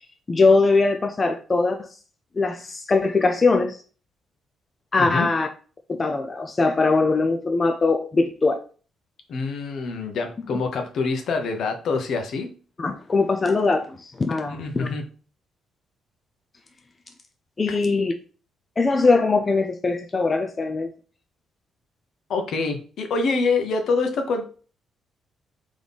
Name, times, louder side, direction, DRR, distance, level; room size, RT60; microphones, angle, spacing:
voice 1, 0.3-1.8 2.4-3.8 4.9-5.5 5.9-8.6 12.8-14.9 17.6-18.1 18.8-20.9, left 3 dB, 30° left, 5 dB, 0.5 m, -21 dB
voice 2, 9.3-12.5 14.5-15.0 17.7-17.8 22.3-24.4, left 4 dB, 65° left, 5 dB, 0.9 m, -26 dB
3.5 x 3.1 x 4.0 m, 0.39 s
cardioid pair, 90°, 0 cm